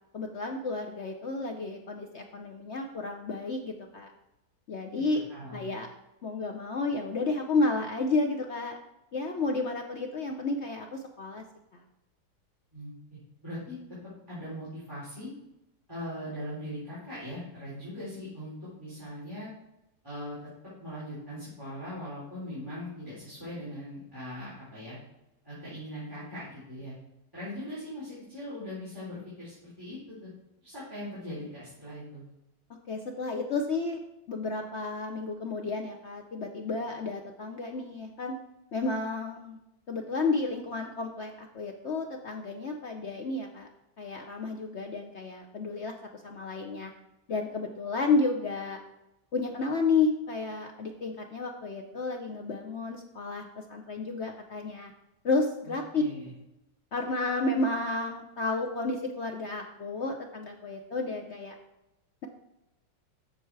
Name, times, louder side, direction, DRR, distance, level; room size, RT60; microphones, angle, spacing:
voice 1, 0.1-4.1 4.7-5.2 5.5-5.9 6.2-8.8 9.1-11.4 11.7-11.8 32.7-34.0 34.3-38.4 38.7-39.6 39.9-43.7 44.0-46.9 47.3-48.8 49.3-54.9 55.2-56.0 56.9-61.5, left 3 dB, 60° left, 3 dB, 0.7 m, -31 dB
voice 2, 5.1-5.7 12.7-13.8 14.3-15.3 15.9-19.5 20.0-20.4 20.8-25.0 25.4-26.9 27.3-30.3 30.6-32.3 55.7-56.3, equal, 10° right, -11 dB, 3.6 m, -40 dB
7.8 x 6.9 x 4.6 m, 0.92 s
omnidirectional pair, 1.9 m